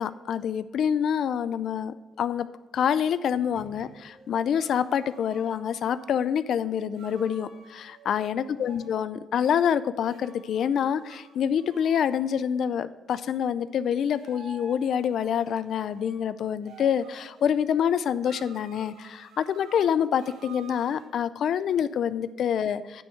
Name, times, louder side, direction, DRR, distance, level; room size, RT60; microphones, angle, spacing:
voice 1, 0.0-2.5 2.7-23.0, left 8 dB, 65° left, 14 dB, 0.4 m, -26 dB
sound 1, 3.2-6.1 6.9-8.9 10.1-12.2 14.1-16.2 16.6-17.5 18.2-21.1, right 3 dB, 90° right, 1.4 m, -51 dB
9.5 x 4.6 x 6.5 m, 1.2 s
cardioid pair, 125°, 0 cm